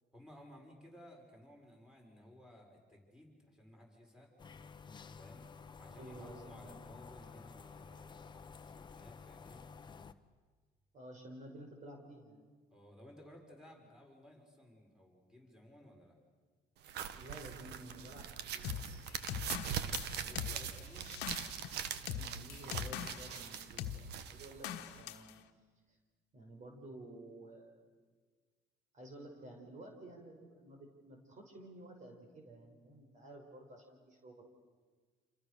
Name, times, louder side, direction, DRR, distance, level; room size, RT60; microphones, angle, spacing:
voice 1, 0.1-4.3 5.2-5.5 5.8-9.7 12.7-16.2 20.1-21.1, equal, 5° right, 1 dB, 6.0 m, -57 dB
sound 1, 4.4-10.1, left 5 dB, 25° left, 1.1 m, -52 dB
voice 2, 5.9-7.0 10.9-12.5 17.1-19.1 22.2-25.4 26.3-27.8 28.9-34.4, right 1 dB, 45° right, 3 dB, 5.6 m, -52 dB
sound 2, 16.8-25.0, right 9 dB, 80° right, 1.5 m, -42 dB
sound 3, 18.6-23.4 23.8-24.0 24.6-25.3, left 11 dB, 90° left, 1.3 m, -42 dB
28.5 x 28.5 x 6.8 m, 1.5 s
cardioid pair, 110°, 17 cm